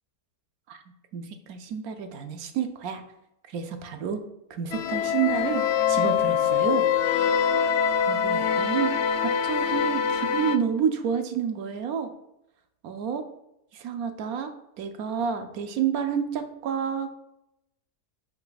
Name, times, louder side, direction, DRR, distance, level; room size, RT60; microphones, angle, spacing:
voice 1, 1.1-3.0 3.5-4.2 4.5-5.6 5.9-6.9 7.6-12.1 12.8-13.2 13.7-14.5 14.8-17.2, right 7 dB, 70° right, 7 dB, 1.1 m, -29 dB
sound 1, 4.7-10.6, left 8 dB, 75° left, 0.6 m, -24 dB
5.7 x 5.3 x 4.0 m, 0.83 s
omnidirectional pair, 1.7 m